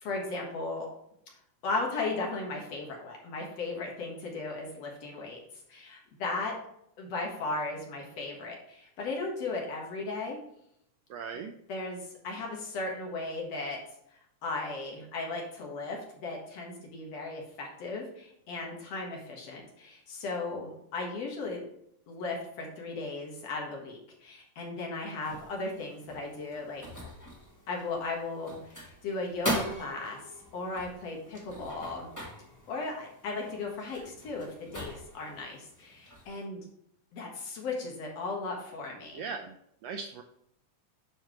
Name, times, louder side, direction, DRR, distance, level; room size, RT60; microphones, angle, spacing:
voice 1, 0.0-0.9 1.6-5.4 5.7-6.5 7.0-10.4 11.7-13.8 14.1-21.7 22.1-26.8 27.7-30.2 30.5-32.1 32.7-36.6 37.1-39.2, left 3 dB, 60° left, -1 dB, 2.5 m, -36 dB
voice 2, 11.1-11.5 39.1-39.5 39.8-40.2, right 5 dB, 85° right, 5 dB, 1.5 m, -38 dB
sound 1, 25.2-36.4, equal, 15° left, 0.7 m, -41 dB
9.1 x 5.8 x 3.1 m, 0.74 s
omnidirectional pair, 3.5 m